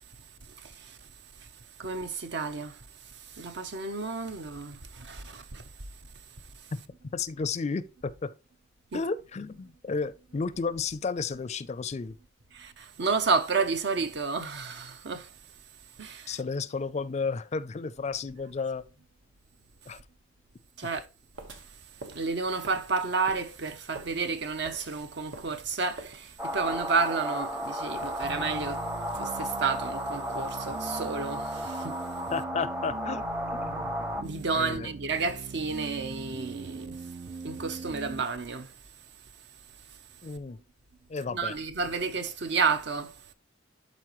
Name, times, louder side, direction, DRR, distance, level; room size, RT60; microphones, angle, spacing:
voice 1, 0.6-1.0 1.8-2.8 3.3-5.6 8.9-9.0 12.5-15.3 16.0-16.4 20.8-21.1 22.1-28.8 29.1-32.0 34.0-37.0 37.4-38.7 41.3-43.1, right 4 dB, 65° right, 0.8 m, -31 dB
voice 2, 7.1-8.3 8.9-12.2 16.3-18.8 19.9-20.0 32.3-33.9 34.5-34.9 40.2-40.6 41.1-41.6, left 4 dB, 35° left, 0.4 m, -33 dB
sound 1, 21.3-28.8, right 2 dB, 85° right, 1.4 m, -49 dB
sound 2, 26.4-34.2, equal, 10° right, 0.7 m, -34 dB
sound 3, 28.2-38.2, right 4 dB, 35° right, 0.4 m, -41 dB
12.0 x 4.1 x 3.0 m
head